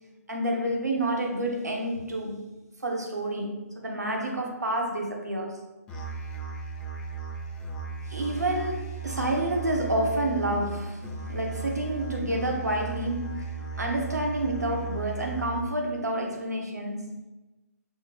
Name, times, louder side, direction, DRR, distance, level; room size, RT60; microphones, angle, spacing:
voice 1, 0.3-2.4 2.8-5.6 8.1-13.5 13.8-17.1, right 1 dB, 80° right, 1.0 m, -29 dB
Musical instrument, 5.9-15.8, right 4 dB, 10° left, 0.4 m, -36 dB
5.6 x 2.1 x 3.0 m
figure-of-eight pair, 140°, 9 cm